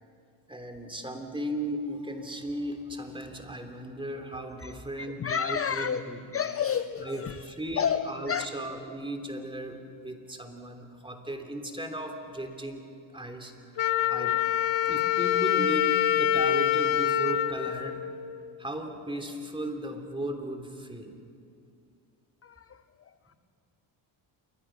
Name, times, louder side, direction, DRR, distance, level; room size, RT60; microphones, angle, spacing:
voice 1, 0.5-6.2 7.0-12.8 13.1-13.8 14.1-14.4 14.9-18.0 18.6-21.1, right 1 dB, 10° right, 5 dB, 3.2 m, -36 dB
voice 2, 4.6-6.0 6.3-8.5 22.4-23.3, left 7 dB, 30° left, 12 dB, 0.6 m, -31 dB
Wind instrument woodwind instrument, 13.8-18.6, left 10 dB, 70° left, 1.0 m, -26 dB
27.5 x 23.5 x 6.2 m, 2.4 s
cardioid pair, 95°, 47 cm